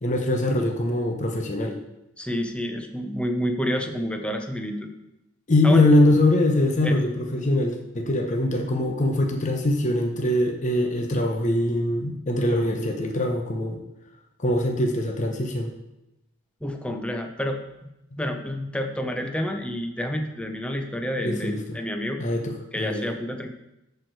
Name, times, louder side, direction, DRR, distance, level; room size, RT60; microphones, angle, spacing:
voice 1, 0.0-1.8 5.5-13.8 14.4-15.7 21.2-21.8 22.2-23.1, left 1 dB, 35° left, 3 dB, 0.8 m, -23 dB
voice 2, 2.2-4.9 5.6-5.8 6.8-7.0 16.6-17.9 18.2-22.2 22.7-23.5, equal, 5° left, 4 dB, 0.7 m, -29 dB
12.5 x 4.7 x 4.7 m, 0.92 s
head